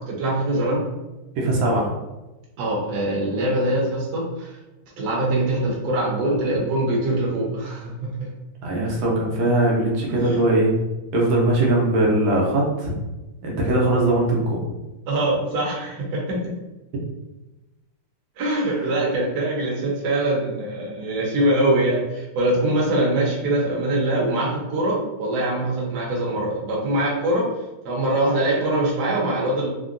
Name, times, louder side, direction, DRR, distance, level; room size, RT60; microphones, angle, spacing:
voice 1, 0.1-0.9 2.6-4.6 5.0-8.3 10.2-10.5 15.1-16.4 18.4-27.5 27.8-29.7, right 1 dB, 60° right, -4 dB, 1.2 m, -23 dB
voice 2, 1.4-1.9 8.6-10.7 11.1-12.9 13.4-14.6, right 1 dB, 80° right, -3 dB, 1.5 m, -20 dB
3.7 x 2.1 x 2.4 m, 1.0 s
omnidirectional pair, 2.3 m